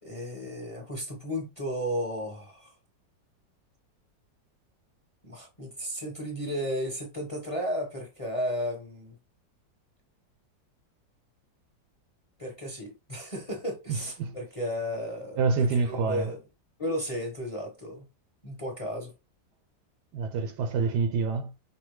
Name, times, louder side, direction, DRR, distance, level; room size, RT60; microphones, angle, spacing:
voice 1, 0.0-2.7 5.2-9.1 12.4-16.4 16.8-18.1 18.4-19.1, equal, 20° left, 1.0 m, -34 dB
voice 2, 13.9-14.4 15.4-16.3 20.1-21.5, right 4 dB, 70° right, 1.1 m, -27 dB
5.6 x 2.6 x 3.1 m
omnidirectional pair, 2.0 m